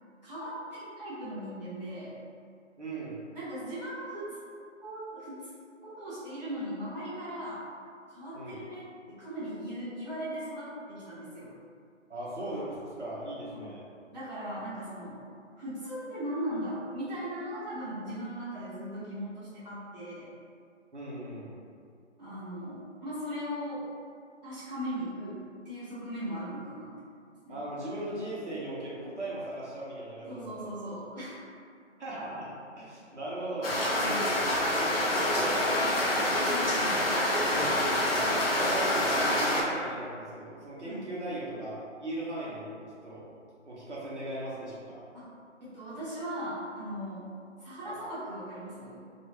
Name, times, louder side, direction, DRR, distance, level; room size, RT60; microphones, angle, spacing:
voice 1, 0.2-2.1 3.3-4.4 4.8-5.4 5.8-7.6 8.1-11.5 13.5-13.7 14.1-15.2 15.6-20.3 22.2-23.9 24.4-26.9 27.4-27.6 30.3-31.5 34.0-34.4 36.4-37.2 40.8-41.1 45.1-45.3 45.6-47.3 47.6-49.0, equal, 35° right, -13 dB, 0.8 m, -38 dB
voice 2, 2.8-3.2 8.3-8.6 12.1-13.8 20.9-21.6 27.5-30.7 32.0-33.8 34.7-36.3 38.5-42.7 43.0-43.2 43.6-45.0 47.9-48.0, right 1 dB, 65° right, -7 dB, 1.0 m, -38 dB
sound 1, 33.6-39.6, left 1 dB, 50° left, 0.6 m, -27 dB
2.7 x 2.3 x 2.9 m, 2.3 s
figure-of-eight pair, 160°, 38 cm